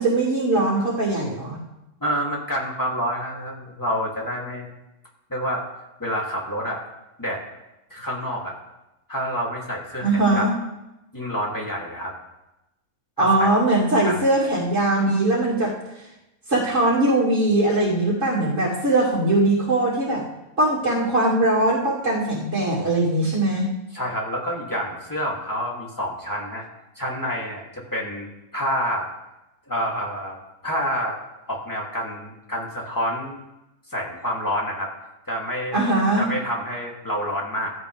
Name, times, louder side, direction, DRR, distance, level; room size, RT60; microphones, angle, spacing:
voice 1, 0.0-1.6 10.0-10.5 13.2-15.7 16.5-20.2 20.6-23.7 35.7-36.3, right 2 dB, 55° right, -5 dB, 2.9 m, -21 dB
voice 2, 2.0-4.7 5.3-5.6 6.0-6.8 7.2-7.4 7.9-8.5 9.1-10.4 11.1-12.1 13.2-13.5 14.1-14.5 23.9-26.6 26.9-29.1 29.7-30.4 30.6-31.2 31.5-33.4 33.9-34.9 35.3-35.8 36.2-37.7, equal, 15° left, -3 dB, 2.9 m, -28 dB
16.0 x 13.5 x 3.5 m, 0.94 s
omnidirectional pair, 1.5 m